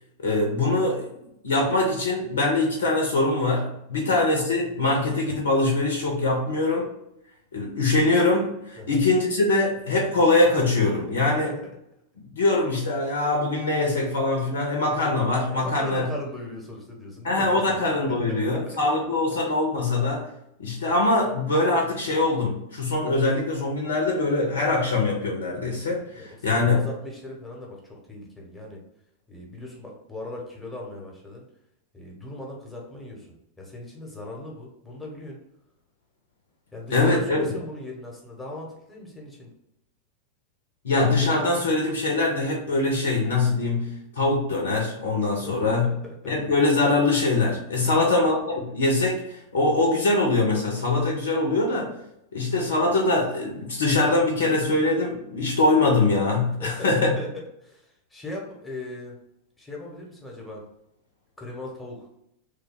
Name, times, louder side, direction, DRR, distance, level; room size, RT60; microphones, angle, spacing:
voice 1, 0.2-1.1 1.4-6.9 7.5-11.5 12.2-16.1 17.2-20.3 20.6-26.9 36.9-37.5 40.8-46.0 46.3-51.9 52.3-57.2, left 2 dB, 65° left, 0 dB, 0.7 m, -23 dB
voice 2, 11.2-11.5 15.5-18.8 26.2-28.8 29.3-31.4 31.9-35.4 36.7-39.5 45.4-46.3 47.8-48.1 49.6-49.7 56.6-59.2 59.6-60.6 61.4-62.1, left 1 dB, 10° left, -2 dB, 1.0 m, -39 dB
3.2 x 2.3 x 3.7 m, 0.80 s
figure-of-eight pair, 90°, 0 cm